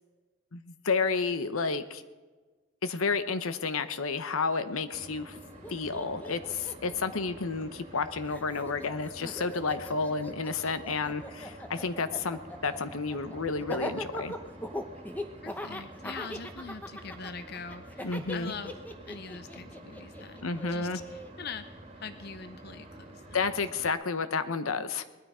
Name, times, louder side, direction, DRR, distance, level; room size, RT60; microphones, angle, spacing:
voice 1, 0.5-2.0 2.8-5.4 5.7-14.3 18.0-18.5 20.4-21.0 23.3-25.0, left 4 dB, 80° left, 11 dB, 0.9 m, -31 dB
sound 1, 4.9-23.9, right 1 dB, 30° right, 2.2 m, -49 dB
Laughter, 5.3-5.4 5.6-8.0 8.3-21.3, left 1 dB, 10° left, 0.8 m, -40 dB
voice 2, 15.4-20.4 20.7-23.5 24.8-24.9, left 5 dB, 50° left, 10 dB, 0.6 m, -43 dB
19.5 x 12.5 x 5.0 m, 1.3 s
head